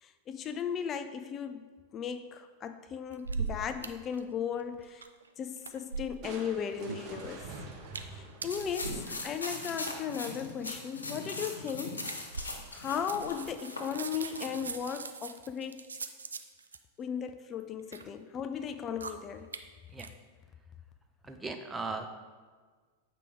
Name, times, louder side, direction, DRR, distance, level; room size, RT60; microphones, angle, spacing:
voice 1, 0.0-1.7 1.9-5.1 5.4-7.5 8.0-12.1 12.7-16.0 17.0-19.5, left 7 dB, 30° left, 10 dB, 0.4 m, -36 dB
sound 1, 3.1-3.9 4.1-4.2 4.5-5.3 5.6-6.4 6.8-7.4 7.9-8.1 8.4-9.9 10.6-10.7 11.1-11.3 11.7-11.8 12.0-12.8 13.0-16.8 17.5-18.0 18.6-18.7 19.0-19.1 19.5-19.6 20.0-20.1, right 5 dB, 75° right, 0.4 m, -40 dB
Crushing, 6.2-9.6, right 3 dB, 40° right, 1.2 m, -47 dB
sound 2, 8.5-14.7, left 2 dB, 75° left, 1.1 m, -40 dB
voice 2, 21.3-22.1, right 3 dB, 10° right, 6 dB, 0.7 m, -37 dB
8.2 x 4.9 x 3.6 m, 1.5 s
figure-of-eight pair, 90°, 0 cm